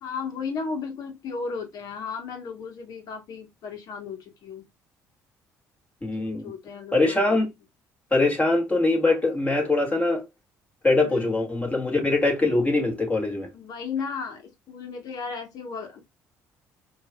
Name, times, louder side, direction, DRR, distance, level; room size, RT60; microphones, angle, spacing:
voice 1, 0.0-4.6 6.2-7.4 11.0-11.4 13.5-16.0, left 5 dB, 65° left, 1.2 m, -35 dB
voice 2, 6.0-6.5 6.9-7.5 8.1-10.2 10.8-13.5, left 2 dB, 20° left, 1.9 m, -22 dB
4.7 x 2.6 x 2.2 m
supercardioid pair, 80°, 7 cm